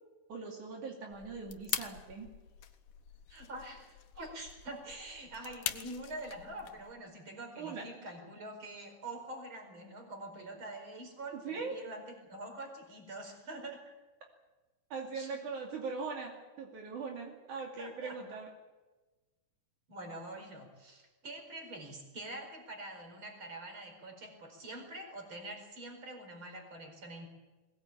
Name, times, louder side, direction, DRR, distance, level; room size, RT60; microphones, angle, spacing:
voice 1, 0.3-2.3 7.6-7.8 11.4-11.8 14.9-18.5, right 4 dB, 70° right, 0 dB, 4.0 m, -40 dB
sound 1, 1.1-6.9, left 11 dB, 85° left, 2.7 m, -43 dB
voice 2, 3.3-13.8 15.1-15.4 17.8-18.4 19.9-27.3, right 2 dB, 40° right, 4 dB, 5.4 m, -45 dB
21.5 x 19.5 x 8.8 m, 1.2 s
omnidirectional pair, 3.6 m